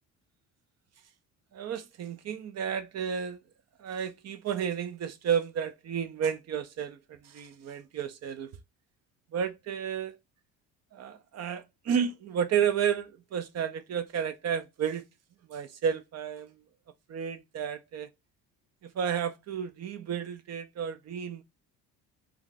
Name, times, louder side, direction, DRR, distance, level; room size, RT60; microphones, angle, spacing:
voice 1, 1.5-3.4 3.8-8.6 9.3-10.2 10.9-15.0 15.5-16.5 17.1-18.1 19.0-21.4, right 8 dB, 45° right, 0.5 m, -32 dB
2.4 x 2.4 x 3.8 m
supercardioid pair, 85°, 38 cm